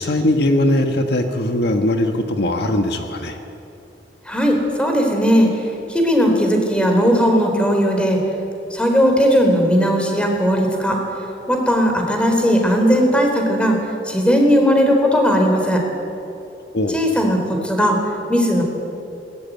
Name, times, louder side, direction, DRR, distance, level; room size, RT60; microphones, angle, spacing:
voice 1, 0.0-3.4 16.7-17.0, left 1 dB, 65° left, 5 dB, 1.5 m, -20 dB
voice 2, 4.3-5.6 5.9-8.2 8.7-11.0 11.5-13.8 14.1-15.8 16.9-18.0 18.3-18.6, equal, 5° left, 2 dB, 3.9 m, -17 dB
21.0 x 19.0 x 9.4 m, 2.8 s
head